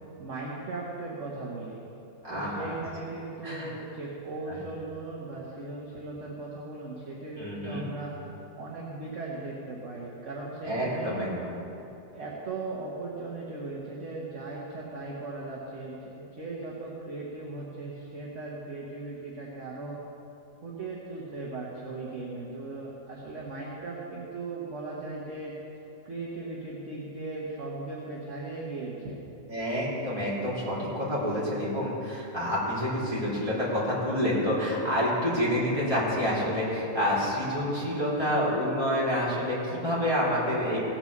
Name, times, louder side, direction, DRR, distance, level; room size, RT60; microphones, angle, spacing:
voice 1, 0.2-1.8 2.3-8.2 8.6-11.2 12.1-20.0 20.6-25.5 26.0-29.2 31.3-31.5, right 3 dB, 50° right, -4 dB, 1.6 m, -38 dB
voice 2, 2.2-2.7 3.4-3.7 7.4-7.9 10.6-11.5 29.5-40.8, equal, 20° right, -8 dB, 3.5 m, -28 dB
17.0 x 6.1 x 6.6 m, 2.9 s
omnidirectional pair, 1.7 m